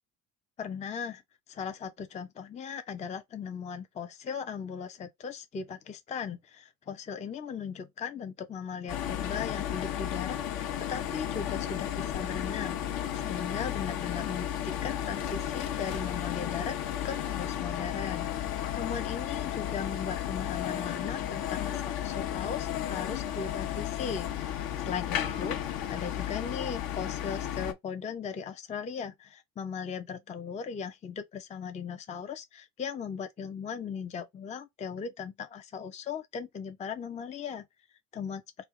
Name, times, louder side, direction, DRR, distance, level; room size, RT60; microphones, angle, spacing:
voice 1, 0.6-1.2 1.5-16.8 17.0-37.7 38.1-38.4, left 6 dB, 15° left, 0.4 m, -38 dB
sound 1, 8.9-27.7, left 10 dB, 60° left, 0.8 m, -33 dB
3.1 x 2.3 x 3.6 m
hypercardioid pair, 70°, 41 cm